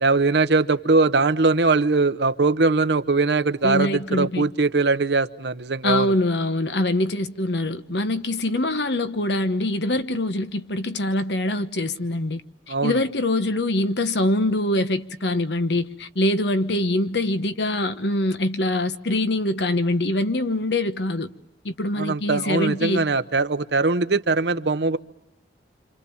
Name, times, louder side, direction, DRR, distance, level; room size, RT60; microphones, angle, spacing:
voice 1, 0.0-6.1 12.7-13.0 22.0-25.0, right 3 dB, 75° right, 0.9 m, -21 dB
voice 2, 3.6-4.5 5.8-12.4 12.7-21.3 21.6-23.1, left 1 dB, 75° left, 1.2 m, -24 dB
27.5 x 27.0 x 7.1 m
head